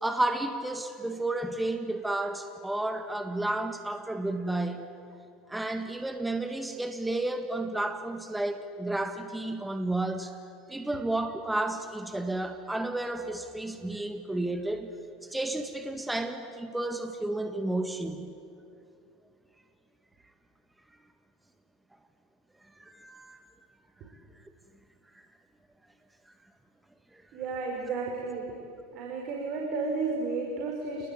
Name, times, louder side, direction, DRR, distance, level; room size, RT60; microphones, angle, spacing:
voice 1, 0.0-4.9 5.5-10.4 10.7-14.9 15.3-18.3 22.8-23.5 27.1-27.2, right 2 dB, 5° right, 7 dB, 1.8 m, -32 dB
voice 2, 27.3-28.5 28.9-31.1, right 4 dB, 50° right, -1 dB, 5.4 m, -32 dB
28.5 x 20.0 x 9.3 m, 2.5 s
hypercardioid pair, 80°, 0 cm